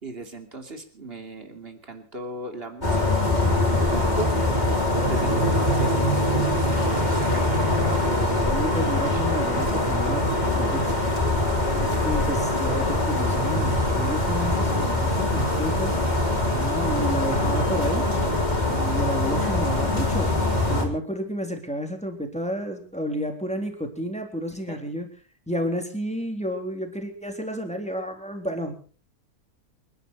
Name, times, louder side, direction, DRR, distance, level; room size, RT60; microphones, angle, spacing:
voice 1, 0.0-7.5 20.7-20.9 24.7-24.8, right 2 dB, 40° right, 6 dB, 3.1 m, -38 dB
sound 1, 2.8-20.9, left 1 dB, 25° left, 4.2 m, -23 dB
voice 2, 8.3-10.2 10.5-11.0 11.7-16.0 16.5-18.1 18.7-20.3 20.7-25.1 25.5-28.7, equal, 5° left, 4 dB, 3.4 m, -31 dB
28.5 x 11.5 x 4.3 m, 0.41 s
omnidirectional pair, 1.6 m